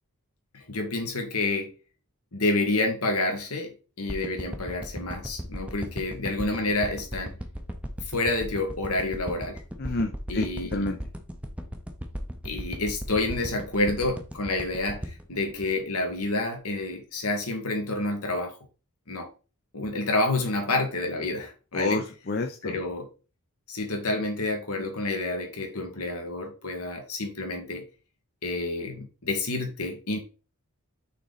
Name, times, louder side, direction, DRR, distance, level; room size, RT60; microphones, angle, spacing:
voice 1, 0.5-1.7 2.3-3.7 4.0-7.4 8.1-9.6 10.3-10.9 12.4-18.6 19.1-19.3 19.7-22.0 22.6-23.1 23.7-27.8 28.4-30.2, left 2 dB, 80° left, 1.8 m, -29 dB
sound 1, 4.1-16.4 16.8-16.9, equal, 5° right, 0.6 m, -36 dB
voice 2, 9.8-11.0 21.7-22.8, left 2 dB, 45° left, 0.6 m, -29 dB
5.9 x 3.9 x 4.1 m
head